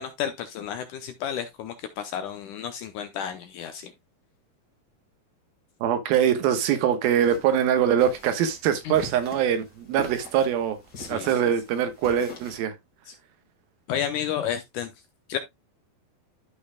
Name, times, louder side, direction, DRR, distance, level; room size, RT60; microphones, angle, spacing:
voice 1, 0.0-3.9 8.9-9.0 11.0-11.3 13.9-14.9 15.3-15.4, left 9 dB, 75° left, 2.0 m, -31 dB
voice 2, 5.8-10.8 11.1-12.8, right 9 dB, 80° right, 2.9 m, -23 dB
sound 1, 7.2-12.6, left 2 dB, 30° left, 2.0 m, -43 dB
13.0 x 5.5 x 2.2 m
omnidirectional pair, 4.3 m